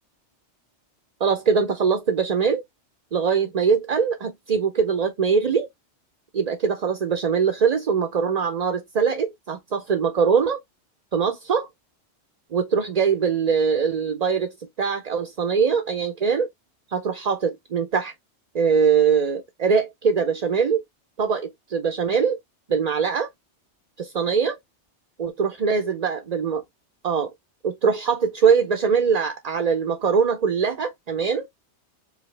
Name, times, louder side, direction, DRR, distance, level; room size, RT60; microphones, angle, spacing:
voice 1, 1.2-2.6 3.1-5.7 6.3-10.6 11.1-11.7 12.5-16.5 16.9-18.1 18.5-20.8 21.2-22.4 22.7-23.3 24.0-24.6 25.2-26.6 27.0-27.3 27.6-31.5, right 6 dB, 45° right, 0.7 m, -22 dB
4.9 x 2.8 x 3.3 m
omnidirectional pair, 1.2 m